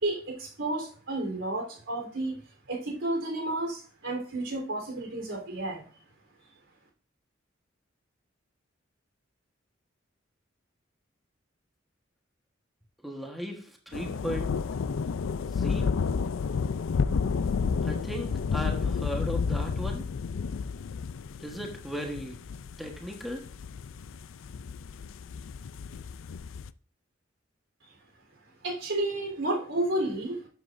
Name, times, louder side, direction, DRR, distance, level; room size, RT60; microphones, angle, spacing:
voice 1, 0.0-2.3 2.7-5.9 28.6-30.5, right 2 dB, 75° right, 0 dB, 3.6 m, -31 dB
voice 2, 13.0-14.5 15.4-16.0 17.8-20.1 21.4-22.4 22.8-23.5, equal, ahead, 0 dB, 1.3 m, -37 dB
sound 1, 13.9-26.7, left 5 dB, 85° left, 0.4 m, -31 dB
12.5 x 7.5 x 2.6 m, 0.42 s
head